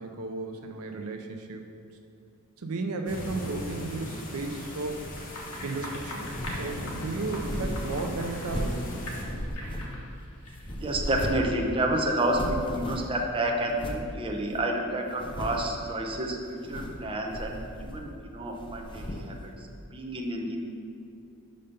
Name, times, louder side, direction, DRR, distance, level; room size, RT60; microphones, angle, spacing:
voice 1, 0.0-1.7 2.6-5.0 5.6-8.8, right 3 dB, 75° right, 5 dB, 0.6 m, -34 dB
sound 1, 3.1-9.2, left 1 dB, 40° left, 1.1 m, -38 dB
sound 2, 5.2-8.8 9.0-11.3, left 1 dB, 75° left, 1.3 m, -42 dB
sound 3, 6.2-6.7 7.2-8.9 9.2-10.2 10.5-11.5 11.8-11.9 12.2-13.2 13.7-14.1 14.6-14.7 15.1-15.8 16.5-17.0 17.3-18.2 18.5-19.4, equal, 25° left, 0.6 m, -35 dB
voice 2, 10.7-19.5 19.9-20.6, right 1 dB, 25° right, 1 dB, 0.6 m, -30 dB
5.6 x 5.2 x 5.3 m, 2.6 s
head